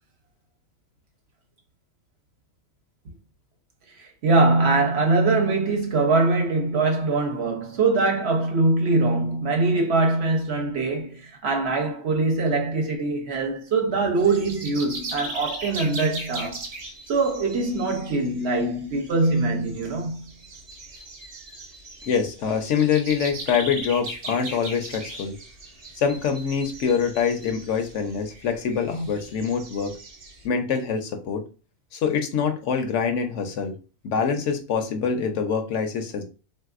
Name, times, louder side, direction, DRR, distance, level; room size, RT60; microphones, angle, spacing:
voice 1, 4.0-16.6 17.1-20.3, right 3 dB, 60° right, 0.9 m, -23 dB
sound 1, 14.2-30.5, right 1 dB, 40° right, 0.6 m, -39 dB
voice 2, 22.0-25.4 26.0-29.9 30.4-31.4 31.9-33.7 34.0-36.2, left 6 dB, 70° left, 0.9 m, -25 dB
3.5 x 2.6 x 2.4 m
omnidirectional pair, 1.4 m